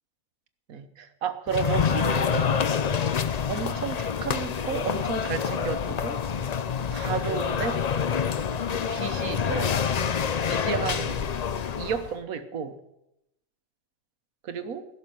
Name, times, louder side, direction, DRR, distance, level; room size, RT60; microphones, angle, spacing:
voice 1, 0.7-2.7 3.5-6.2 6.9-7.8 8.9-9.7 10.4-11.2 11.8-12.7 14.4-14.9, right 7 dB, 85° right, 9 dB, 1.5 m, -32 dB
sound 1, 1.5-12.1, left 7 dB, 55° left, 0.4 m, -27 dB
16.0 x 6.7 x 9.1 m, 0.87 s
omnidirectional pair, 1.4 m